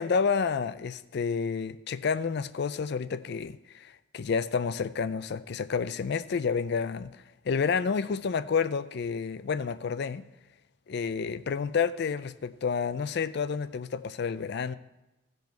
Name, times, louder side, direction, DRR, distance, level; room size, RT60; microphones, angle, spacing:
voice 1, 0.0-7.1 7.5-10.3 10.9-14.7, left 5 dB, 55° left, 14 dB, 0.4 m, -29 dB
15.5 x 5.4 x 4.5 m, 0.98 s
head